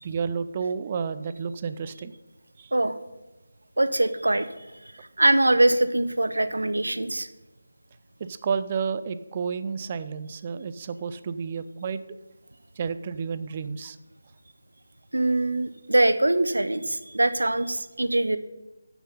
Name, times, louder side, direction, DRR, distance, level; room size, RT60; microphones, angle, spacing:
voice 1, 0.0-2.1 2.6-2.7 8.2-12.2 12.8-14.0, right 6 dB, 30° right, 13 dB, 0.4 m, -31 dB
voice 2, 3.8-4.5 5.2-7.3 15.1-18.4, right 1 dB, 75° right, 12 dB, 0.7 m, -23 dB
9.2 x 6.1 x 5.5 m, 1.0 s
figure-of-eight pair, 160°, 0 cm